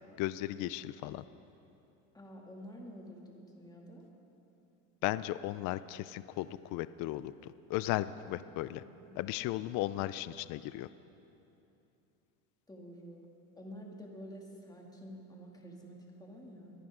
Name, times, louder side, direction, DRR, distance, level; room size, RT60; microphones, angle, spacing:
voice 1, 0.2-1.2 5.0-8.8 9.2-10.9, left 15 dB, 45° left, 15 dB, 0.4 m, -36 dB
voice 2, 2.1-4.0 9.0-9.2 12.7-13.3 13.5-16.7, equal, 10° left, -1 dB, 2.4 m, -49 dB
24.0 x 10.5 x 3.8 m, 2.9 s
supercardioid pair, 110°, 44 cm